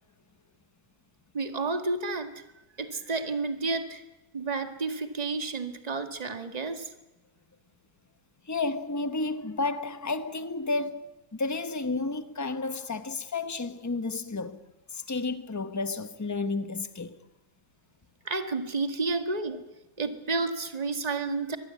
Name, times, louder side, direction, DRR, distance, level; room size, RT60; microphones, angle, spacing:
voice 1, 1.3-2.4 2.8-4.0 4.3-6.9 18.3-19.6 20.0-21.6, right 3 dB, 25° right, 1.7 m, -31 dB
voice 2, 8.5-14.7 14.9-17.2, left 3 dB, 15° left, 0.6 m, -32 dB
24.0 x 21.0 x 8.4 m
omnidirectional pair, 1.8 m